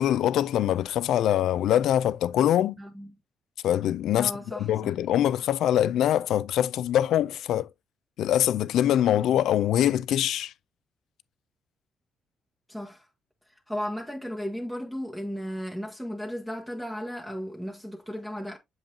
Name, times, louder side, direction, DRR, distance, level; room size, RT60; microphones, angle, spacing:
voice 1, 0.0-2.8 3.6-4.3 4.6-7.7 8.2-10.5, left 11 dB, 80° left, 0.4 m, -23 dB
voice 2, 2.8-3.1 4.1-4.9 12.7-13.1 13.5-18.6, equal, 5° right, 1.1 m, -35 dB
7.1 x 5.4 x 2.7 m
cardioid pair, 90°, 0 cm